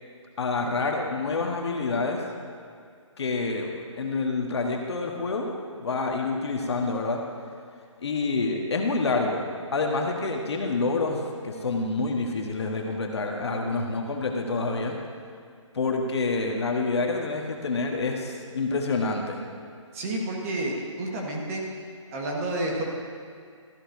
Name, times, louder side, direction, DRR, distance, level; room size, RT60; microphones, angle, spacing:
voice 1, 0.4-2.2 3.2-7.2 8.0-9.4 9.7-15.0 15.7-19.4, left 3 dB, 55° left, 2 dB, 1.3 m, -27 dB
voice 2, 19.9-21.6 22.1-22.8, right 1 dB, 25° right, -2 dB, 1.5 m, -30 dB
13.5 x 11.5 x 2.7 m, 2.2 s
figure-of-eight pair, 150°, 17 cm